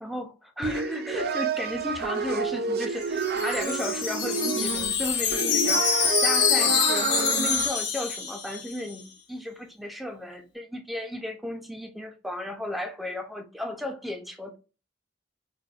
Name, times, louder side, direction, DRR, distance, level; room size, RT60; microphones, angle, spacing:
voice 1, 0.0-5.8 6.2-14.6, left 1 dB, ahead, 0.5 m, -34 dB
sound 1, 0.6-7.7, right 5 dB, 60° right, 0.4 m, -29 dB
Wind chime, 2.9-8.9, left 7 dB, 70° left, 0.9 m, -26 dB
4.0 x 2.5 x 2.3 m
head